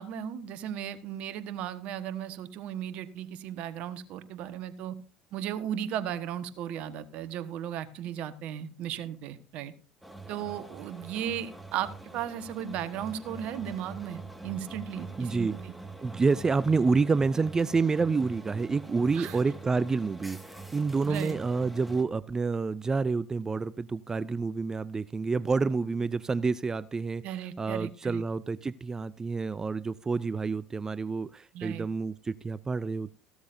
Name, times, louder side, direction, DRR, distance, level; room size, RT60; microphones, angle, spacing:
voice 1, 0.0-5.0 5.3-9.7 10.3-15.7 19.1-19.4 21.0-21.4 27.2-28.2 31.5-31.9, right 10 dB, 60° right, 1.3 m, -36 dB
sound 1, 10.0-22.0, right 3 dB, ahead, 1.7 m, -45 dB
voice 2, 15.2-15.6 16.0-27.2 27.6-33.1, right 4 dB, 25° right, 0.4 m, -28 dB
15.0 x 12.5 x 2.6 m
hypercardioid pair, 70°, 2 cm